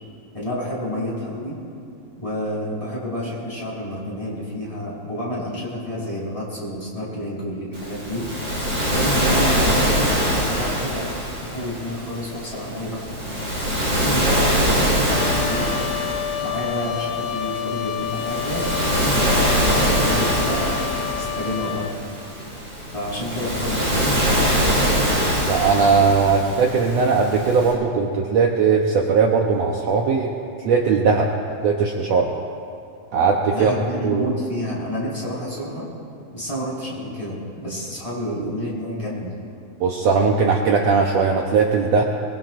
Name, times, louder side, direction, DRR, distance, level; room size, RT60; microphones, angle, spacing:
voice 1, 0.3-1.6 2.2-8.3 8.9-11.1 11.4-13.4 14.0-15.7 16.4-18.7 19.1-20.8 21.1-21.9 22.9-24.7 33.5-35.9 36.3-39.3, equal, 10° left, -7 dB, 5.3 m, -29 dB
Waves surf, 7.7-27.7, equal, 25° right, 4.9 m, -23 dB
Trumpet, 15.1-22.0, left 10 dB, 70° left, 1.5 m, -29 dB
voice 2, 25.5-30.3 30.6-31.3 31.6-32.3 33.1-33.7 34.0-34.3 39.8-42.0, right 5 dB, 65° right, 0 dB, 2.0 m, -19 dB
23.5 x 22.5 x 2.6 m, 2.5 s
omnidirectional pair, 3.5 m